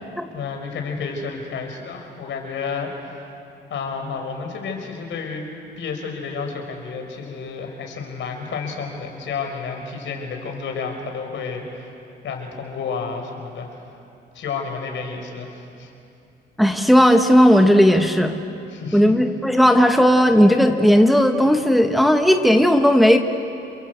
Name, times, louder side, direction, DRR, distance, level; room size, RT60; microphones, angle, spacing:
voice 1, 0.3-3.3 3.7-5.5 5.8-12.0 12.2-13.8 14.3-15.9 18.7-19.1, left 5 dB, 70° left, 3 dB, 5.1 m, -31 dB
voice 2, 16.6-18.3 18.9-23.2, equal, ahead, 5 dB, 1.5 m, -15 dB
29.5 x 23.0 x 8.2 m, 2.7 s
cardioid pair, 90°, 20 cm